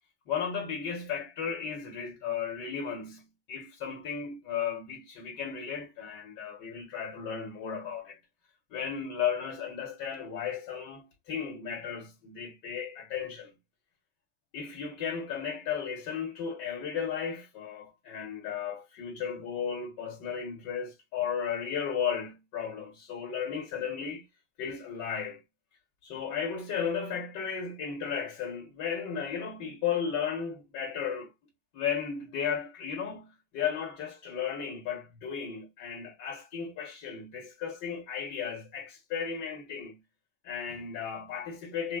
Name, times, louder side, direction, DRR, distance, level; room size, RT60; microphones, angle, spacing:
voice 1, 0.3-8.2 8.7-13.5 14.5-24.2 24.6-25.4 26.0-31.3 31.7-40.0 40.4-42.0, left 7 dB, 65° left, 1.0 m, -35 dB
2.5 x 2.2 x 2.3 m
supercardioid pair, 120°, 36 cm